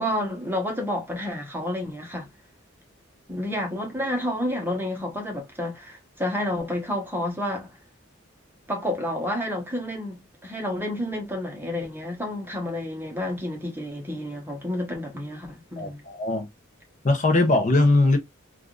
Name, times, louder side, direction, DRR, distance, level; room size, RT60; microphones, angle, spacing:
voice 1, 0.0-2.3 3.3-7.7 8.7-16.0, left 1 dB, 10° right, 1.1 m, -30 dB
voice 2, 15.8-16.5 17.0-18.2, left 2 dB, 40° left, 0.7 m, -20 dB
3.5 x 2.4 x 2.4 m
head